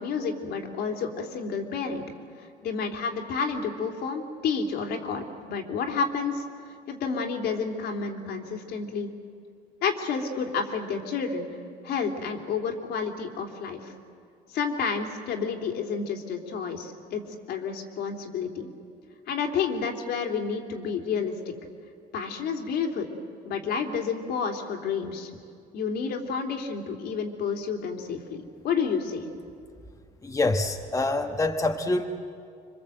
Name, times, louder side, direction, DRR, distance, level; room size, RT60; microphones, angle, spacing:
voice 1, 0.0-2.0 2.6-6.4 6.9-9.1 9.8-11.5 11.8-13.9 14.5-18.7 19.3-21.3 22.1-23.1 23.4-25.3 25.7-29.2, left 5 dB, 70° left, 3 dB, 3.2 m, -30 dB
voice 2, 30.2-32.0, left 2 dB, 20° left, 4 dB, 1.5 m, -26 dB
26.5 x 24.5 x 8.0 m, 2.3 s
cardioid pair, 110°, 17 cm